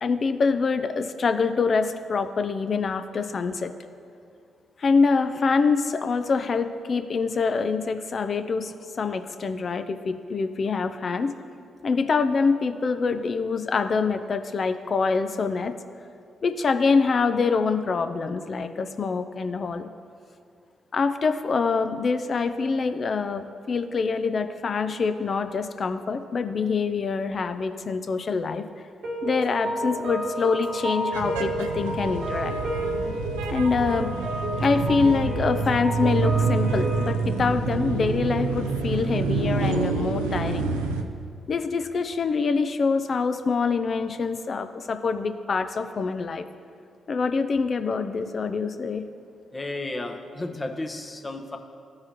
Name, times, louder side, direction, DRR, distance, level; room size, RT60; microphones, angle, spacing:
voice 1, 0.0-3.7 4.8-11.3 11.8-15.8 16.4-19.9 20.9-28.7 29.2-32.6 33.5-34.1 34.6-40.7 41.5-46.5 47.1-49.0, left 4 dB, 50° left, 9 dB, 0.5 m, -25 dB
sound 1, 29.0-37.1, right 1 dB, 65° right, 1.2 m, -31 dB
sound 2, 31.1-41.0, right 4 dB, 90° right, 0.4 m, -27 dB
voice 2, 49.5-51.6, left 2 dB, 30° left, 5 dB, 0.9 m, -33 dB
14.5 x 4.8 x 2.9 m, 2.5 s
hypercardioid pair, 40°, 0 cm